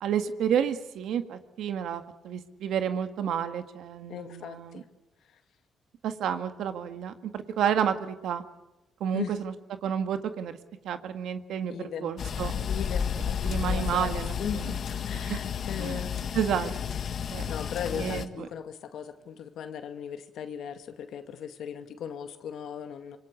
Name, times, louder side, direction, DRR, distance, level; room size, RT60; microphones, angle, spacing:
voice 1, 0.0-4.8 6.0-8.4 9.0-9.5 9.8-10.6 10.8-11.7 12.0-12.6 13.4-14.8 15.2-15.4 15.8-16.0 16.3-16.7 17.3-17.5 17.9-18.5, right 8 dB, 75° right, 9 dB, 1.8 m, -30 dB
voice 2, 4.1-4.9 9.1-9.3 11.7-12.1 12.7-16.1 17.5-23.2, left 8 dB, 75° left, 8 dB, 2.2 m, -38 dB
sound 1, 12.2-18.3, left 7 dB, 55° left, 1.6 m, -31 dB
26.5 x 24.0 x 8.4 m, 0.98 s
cardioid pair, 90°, 0 cm